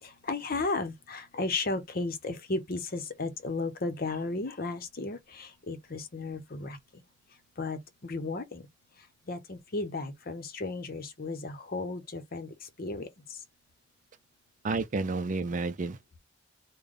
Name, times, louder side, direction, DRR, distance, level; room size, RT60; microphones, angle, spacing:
voice 1, 0.0-7.0 7.6-8.7 9.3-13.4, left 3 dB, 55° left, 0.8 m, -34 dB
voice 2, 14.6-16.2, right 3 dB, 45° right, 0.4 m, -31 dB
3.3 x 2.2 x 3.7 m
head